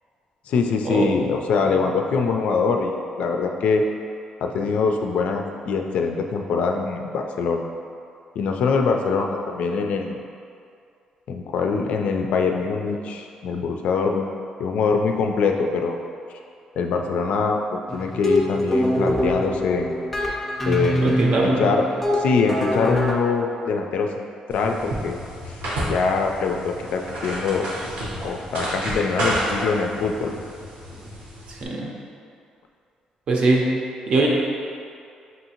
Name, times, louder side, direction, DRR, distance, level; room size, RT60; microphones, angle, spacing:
voice 1, 0.5-3.8 4.4-7.6 8.4-10.2 11.3-14.3 14.6-16.0 16.8-17.6 17.9-20.0 20.7-21.2 21.4-25.2 25.5-25.6 25.9-27.7 28.2-30.3, left 5 dB, 70° left, 3 dB, 0.3 m, -23 dB
sound 1, 17.9-23.1, equal, 5° left, 0.5 m, -24 dB
voice 2, 21.0-21.6 31.5-31.9 33.3-33.8 34.1-34.3, right 3 dB, 45° right, -2 dB, 0.6 m, -21 dB
sound 2, 24.5-31.6, right 1 dB, 80° right, 1.0 m, -30 dB
5.5 x 2.7 x 2.8 m, 2.4 s
cardioid pair, 135°, 2 cm